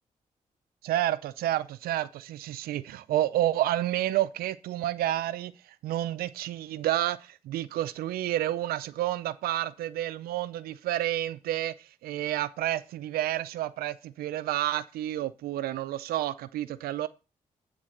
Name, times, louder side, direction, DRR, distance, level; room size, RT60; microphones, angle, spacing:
voice 1, 0.8-17.1, right 13 dB, 85° right, 0.4 m, -30 dB
10.5 x 3.9 x 6.4 m
supercardioid pair, 50°, 15 cm